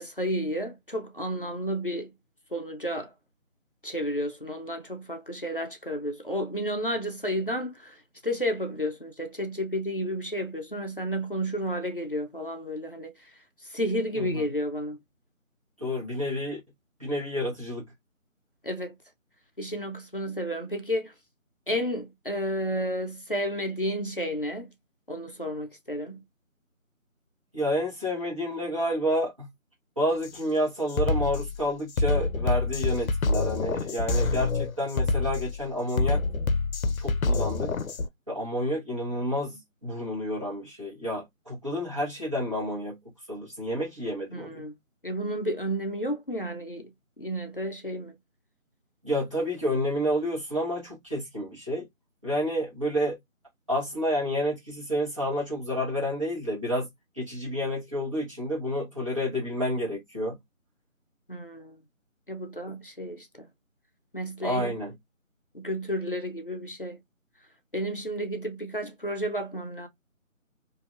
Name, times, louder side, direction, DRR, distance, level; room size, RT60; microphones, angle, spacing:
voice 1, 0.0-2.1 2.5-3.1 3.8-8.0 8.2-13.1 13.7-15.0 18.6-18.9 19.6-21.1 21.7-24.7 25.1-26.2 44.3-44.8 45.0-46.9 47.2-48.1 61.3-61.8 62.3-63.5 64.1-64.7 65.5-67.0 67.7-69.9, equal, 40° left, 0.6 m, -31 dB
voice 2, 15.8-16.6 17.0-17.8 27.5-29.5 30.0-36.2 37.0-37.7 38.3-43.0 43.3-44.6 49.0-51.8 52.2-53.2 53.7-56.9 57.2-60.4 62.7-62.8 64.4-65.0, equal, 25° right, 1.2 m, -29 dB
Drum kit, 30.2-30.4 30.9-38.1, left 3 dB, 80° left, 0.6 m, -27 dB
2.8 x 2.6 x 2.4 m
figure-of-eight pair, 175°, 41 cm